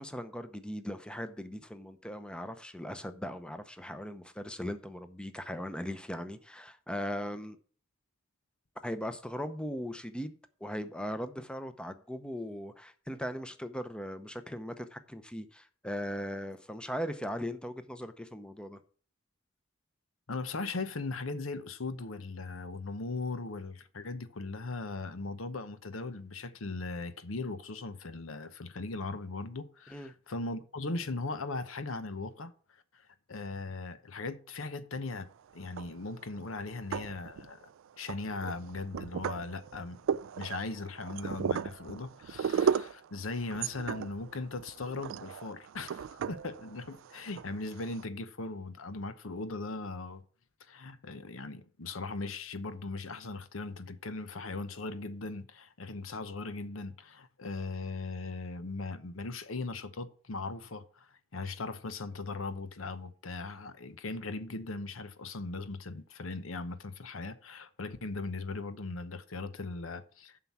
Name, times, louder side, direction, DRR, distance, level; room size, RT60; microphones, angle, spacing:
voice 1, 0.0-7.6 8.8-18.8 29.9-30.1, equal, 5° left, 0.7 m, -39 dB
voice 2, 20.3-32.5 32.9-35.3 35.5-37.6 38.0-50.2 50.6-70.4, left 3 dB, 80° left, 0.9 m, -39 dB
sound 1, 35.6-36.2 36.7-37.6 38.1-48.0, right 7 dB, 70° right, 0.3 m, -35 dB
7.6 x 5.9 x 7.1 m
head